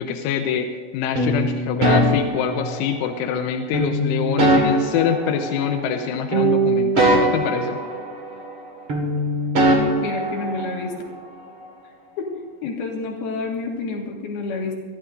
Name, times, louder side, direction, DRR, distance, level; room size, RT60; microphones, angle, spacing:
voice 1, 0.0-7.8, left 7 dB, 85° left, 5 dB, 3.2 m, -25 dB
sound 1, 1.1-3.1 3.7-6.0 6.3-8.6 8.9-10.9, right 1 dB, 85° right, 1.1 m, -21 dB
voice 2, 10.0-10.9 12.2-12.3 12.6-14.8, left 3 dB, 60° left, 0 dB, 3.2 m, -28 dB
23.0 x 14.0 x 2.6 m, 1.4 s
omnidirectional pair, 5.6 m